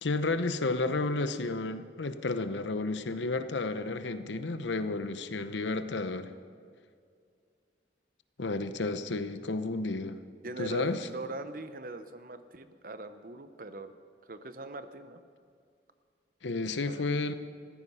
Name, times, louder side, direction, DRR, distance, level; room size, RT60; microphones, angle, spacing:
voice 1, 0.0-6.3 8.4-10.2 10.6-11.1 16.4-17.3, left 3 dB, 85° left, 11 dB, 0.8 m, -32 dB
voice 2, 10.4-13.9 14.2-15.2 16.9-17.1, right 2 dB, 50° right, 10 dB, 0.8 m, -41 dB
15.0 x 14.0 x 5.6 m, 2.2 s
head